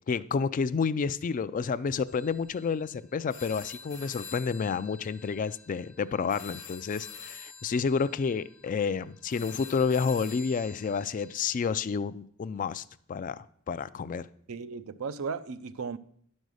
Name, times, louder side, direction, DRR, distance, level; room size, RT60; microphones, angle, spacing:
voice 1, 0.1-12.8 13.1-14.3, left 5 dB, 40° left, 0.3 m, -30 dB
sound 1, 2.1-11.6, left 5 dB, 65° left, 1.1 m, -47 dB
voice 2, 14.5-16.0, right 5 dB, 75° right, 0.5 m, -35 dB
11.0 x 5.3 x 6.3 m
head